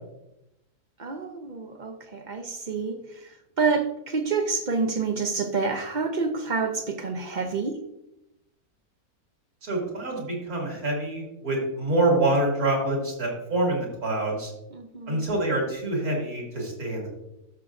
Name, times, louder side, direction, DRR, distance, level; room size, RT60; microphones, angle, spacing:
voice 1, 1.0-7.8 14.7-15.2, right 4 dB, 50° right, 6 dB, 0.5 m, -28 dB
voice 2, 9.6-14.5 15.1-17.1, right 2 dB, 70° right, -2 dB, 2.9 m, -26 dB
12.5 x 6.4 x 2.5 m, 0.90 s
omnidirectional pair, 1.6 m